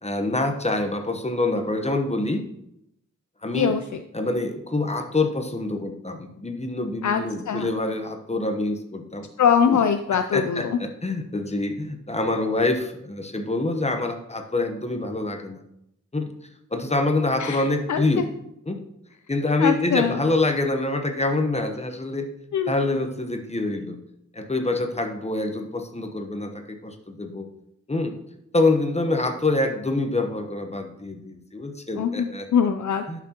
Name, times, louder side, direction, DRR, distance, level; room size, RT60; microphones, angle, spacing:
voice 1, 0.0-2.4 3.4-3.7 4.1-9.3 9.7-9.8 10.3-15.6 16.1-16.2 16.7-18.3 18.7-18.8 19.3-22.3 22.7-24.0 24.3-27.5 27.9-28.2 28.5-32.5 33.1-33.2, left 2 dB, 20° left, 5 dB, 0.9 m, -26 dB
voice 2, 7.0-7.7 9.4-10.8 17.4-18.2 19.6-20.2 22.5-22.7 32.0-33.2, left 7 dB, 70° left, 8 dB, 0.5 m, -23 dB
11.0 x 6.0 x 2.9 m, 0.79 s
wide cardioid pair, 100°, 31 cm